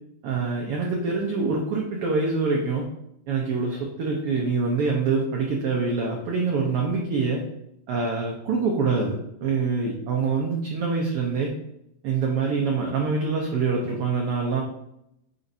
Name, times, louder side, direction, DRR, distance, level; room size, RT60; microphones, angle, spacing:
voice 1, 0.2-2.9 3.3-7.4 7.9-11.5 12.0-14.6, right 4 dB, 90° right, 0 dB, 1.2 m, -25 dB
9.5 x 4.0 x 2.7 m, 0.81 s
omnidirectional pair, 3.7 m